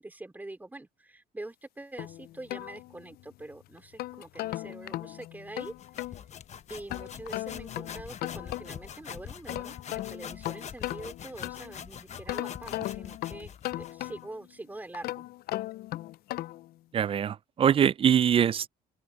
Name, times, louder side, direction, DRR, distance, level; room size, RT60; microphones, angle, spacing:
voice 1, 0.0-5.7 6.7-15.3, right 2 dB, 10° right, 4.0 m, -44 dB
sound 1, 2.0-3.3 3.8-6.2 6.9-8.9 9.3-11.8 12.3-14.4 14.9-16.7, left 16 dB, 65° left, 0.4 m, -37 dB
sound 2, 5.6-14.2, left 8 dB, 45° left, 1.1 m, -44 dB
voice 2, 16.9-18.7, right 9 dB, 35° right, 0.4 m, -23 dB
open air
cardioid pair, 110°, 17 cm